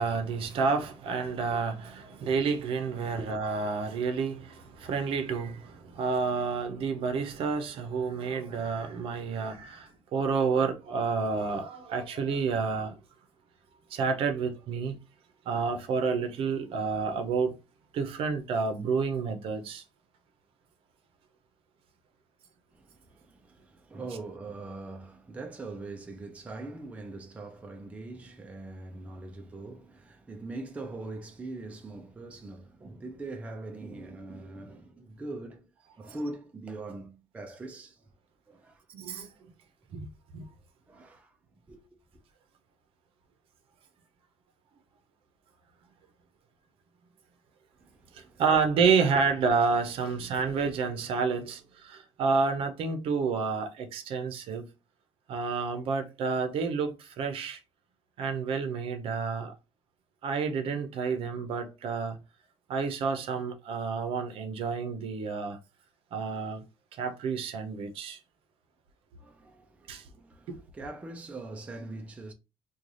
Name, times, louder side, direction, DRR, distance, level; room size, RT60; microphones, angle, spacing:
voice 1, 0.0-13.0 13.9-15.0 15.5-17.5 17.9-19.8 38.9-39.3 39.9-40.1 40.3-40.5 48.1-54.6 55.3-57.6 58.2-59.5 60.2-62.2 62.7-65.6 66.1-66.6 67.0-68.2 69.9-70.0 70.5-70.6, right 5 dB, 60° right, 0.7 m, -29 dB
voice 2, 22.7-35.7 36.0-38.0 38.5-38.8 40.9-41.4 41.7-41.8 47.8-48.4 50.1-50.6 69.2-72.3, right 2 dB, 15° right, 0.4 m, -42 dB
3.2 x 2.3 x 3.8 m
cardioid pair, 170°, 11 cm